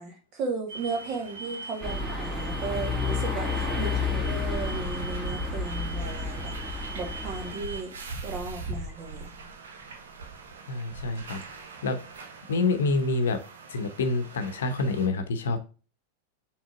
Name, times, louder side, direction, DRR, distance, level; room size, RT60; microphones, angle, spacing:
voice 1, 0.0-6.6 7.0-7.9 8.2-9.4, right 4 dB, 35° right, 2 dB, 1.8 m, -35 dB
sound 1, 0.7-15.1, right 3 dB, 65° right, 1.1 m, -41 dB
sound 2, 1.8-7.5, left 4 dB, 10° right, 2.4 m, -31 dB
voice 2, 10.7-12.0 12.5-13.4 13.7-15.6, left 3 dB, 60° left, 8 dB, 0.8 m, -27 dB
6.3 x 3.3 x 4.6 m, 0.34 s
figure-of-eight pair, 90°, 0 cm